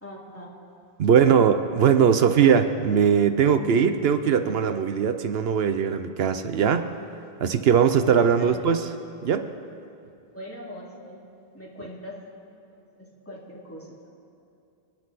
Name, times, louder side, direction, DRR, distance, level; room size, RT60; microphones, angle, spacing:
voice 1, 0.0-0.5 1.0-1.1 8.4-8.6 10.3-11.2 11.5-12.2 12.5-14.1, equal, 15° left, -5 dB, 2.6 m, -42 dB
voice 2, 1.0-6.9 7.4-8.9 9.2-9.5, right 7 dB, 75° right, 9 dB, 0.9 m, -20 dB
29.0 x 10.0 x 4.1 m, 2.6 s
omnidirectional pair, 1.0 m